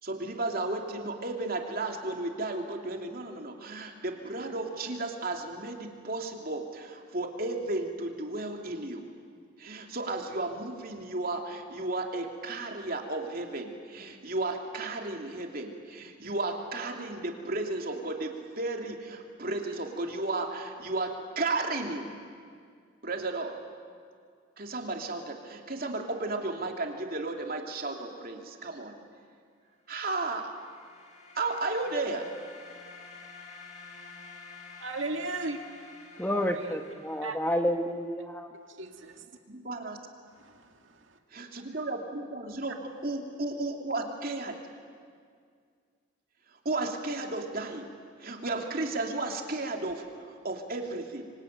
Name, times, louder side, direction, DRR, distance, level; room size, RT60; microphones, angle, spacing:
voice 1, 0.0-9.1 9.6-22.1 23.0-23.6 24.6-29.0 29.9-30.5 31.3-32.3 39.5-40.2 41.3-44.6 46.6-47.9 48.2-51.3, right 2 dB, 45° right, 2.9 m, -34 dB
Hoover Wash, 30.1-37.8, left 4 dB, 35° left, 4.7 m, -50 dB
voice 2, 34.8-35.7 36.3-36.8 37.2-37.4 38.8-39.3 40.4-41.2, right 3 dB, 75° right, 2.2 m, -37 dB
voice 3, 36.2-38.5, equal, 10° left, 1.1 m, -30 dB
25.5 x 25.0 x 9.2 m
head